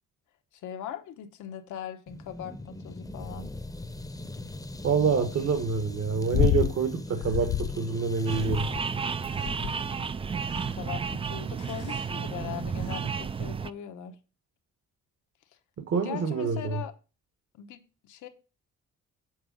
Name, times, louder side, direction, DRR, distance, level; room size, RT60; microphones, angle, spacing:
voice 1, 0.5-3.5 10.7-14.2 16.0-16.9 17.5-18.3, left 9 dB, 80° left, 1.1 m, -40 dB
sound 1, 2.1-10.1, left 2 dB, 10° left, 0.7 m, -41 dB
voice 2, 4.8-8.7 15.9-16.8, right 5 dB, 55° right, 1.3 m, -27 dB
sound 2, 6.3-6.8 7.2-7.8 8.3-8.9 9.4-9.9 10.5-10.9 11.6-12.0 12.9-13.0, left 12 dB, 50° left, 0.5 m, -28 dB
sound 3, 8.3-13.7, right 6 dB, 20° right, 0.3 m, -32 dB
7.9 x 4.7 x 5.2 m
cardioid pair, 90°, 30 cm